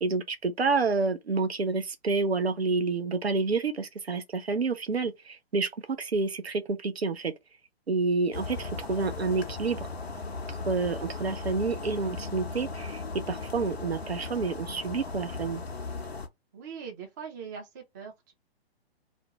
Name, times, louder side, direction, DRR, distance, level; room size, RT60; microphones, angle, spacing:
voice 1, 0.0-5.7 6.0-7.3 7.9-9.9 10.7-15.6, right 4 dB, 80° right, 0.6 m, -29 dB
sound 1, 8.3-16.3, left 3 dB, 80° left, 0.7 m, -37 dB
voice 2, 16.5-18.3, right 6 dB, 20° right, 0.4 m, -41 dB
2.5 x 2.1 x 2.9 m
figure-of-eight pair, 125°, 31 cm